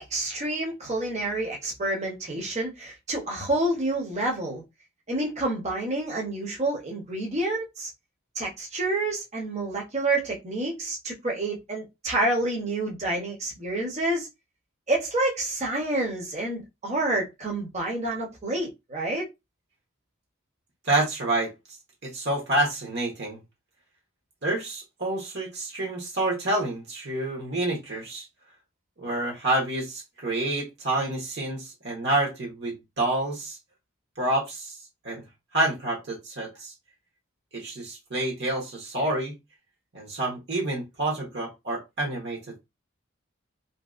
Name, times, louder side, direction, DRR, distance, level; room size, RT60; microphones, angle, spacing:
voice 1, 0.1-4.6 5.1-7.9 8.3-14.3 14.9-19.3, right 2 dB, 35° right, 0.9 m, -28 dB
voice 2, 20.8-21.5 22.0-23.4 24.4-28.3 29.0-33.6 34.2-34.8 35.0-35.2 35.5-36.7 37.5-39.3 39.9-42.4, right 2 dB, 55° right, 1.1 m, -28 dB
2.8 x 2.7 x 2.5 m
head